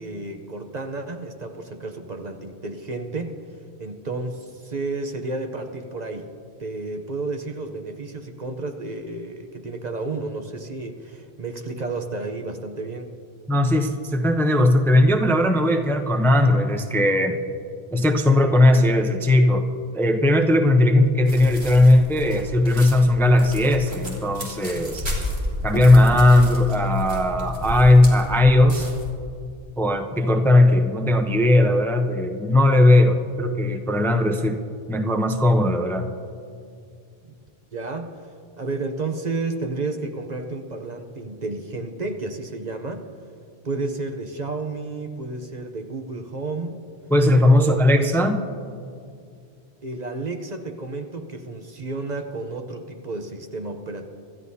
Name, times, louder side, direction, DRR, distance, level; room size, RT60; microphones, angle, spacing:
voice 1, 0.0-3.5 3.8-6.3 6.6-13.1 37.7-38.3 38.6-43.1 43.6-46.8 47.5-48.3 49.8-54.1, right 3 dB, 45° right, 5 dB, 0.9 m, -31 dB
voice 2, 13.5-17.4 17.9-19.7 19.9-25.0 25.6-28.9 29.8-34.6 34.9-36.1 47.1-48.4, left 1 dB, ahead, 5 dB, 0.6 m, -18 dB
sound 1, 21.3-29.1, left 1 dB, 85° right, 3.0 m, -32 dB
26.0 x 13.5 x 2.8 m, 2.3 s
omnidirectional pair, 1.1 m